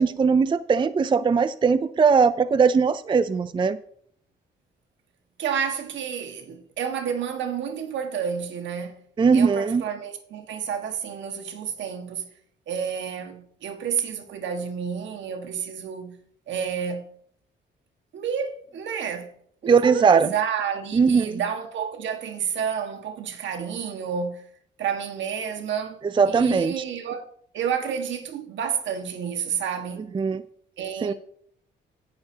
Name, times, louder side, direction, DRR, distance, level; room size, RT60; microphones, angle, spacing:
voice 1, 0.0-3.8 9.2-9.8 19.7-20.3 20.9-21.4 26.2-26.7 30.1-30.4 31.0-31.1, right 5 dB, 25° right, 0.4 m, -20 dB
voice 2, 5.4-9.0 9.3-12.3 12.7-16.2 16.5-17.1 18.1-19.3 19.6-24.5 24.8-27.2 27.5-30.0 30.8-31.1, right 7 dB, 75° right, 1.6 m, -30 dB
17.5 x 6.7 x 2.8 m
cardioid pair, 80°, 20 cm